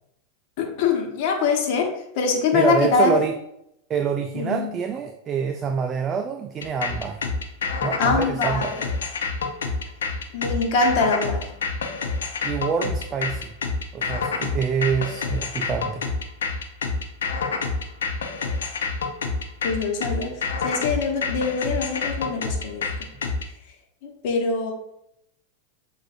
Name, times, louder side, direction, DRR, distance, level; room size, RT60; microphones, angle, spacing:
voice 1, 0.6-1.9 2.1-3.2 4.3-4.7 8.0-8.7 10.3-11.4 19.6-20.3 20.6-22.8 24.2-24.7, left 4 dB, 60° left, 1 dB, 1.1 m, -23 dB
voice 2, 2.5-3.4 3.9-7.2 7.8-8.7 12.4-13.5 13.9-16.1, right 6 dB, 30° right, 5 dB, 0.3 m, -26 dB
sound 1, 6.6-23.5, left 4 dB, 90° left, 0.5 m, -28 dB
7.3 x 2.5 x 2.6 m, 0.79 s
hypercardioid pair, 110°, 0 cm